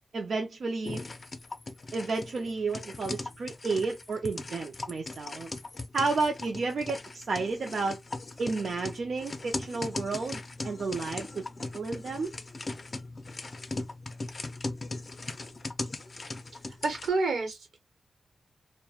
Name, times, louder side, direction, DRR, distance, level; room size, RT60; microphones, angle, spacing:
voice 1, 0.1-1.0 1.9-5.5 5.9-8.0 8.4-11.4 11.7-12.3, right 3 dB, 65° right, 0.4 m, -31 dB
sound 1, 0.8-17.1, left 2 dB, 40° left, 0.4 m, -39 dB
voice 2, 16.8-17.8, right 3 dB, 90° right, 1.0 m, -29 dB
2.3 x 2.1 x 2.8 m
wide cardioid pair, 110°, 0 cm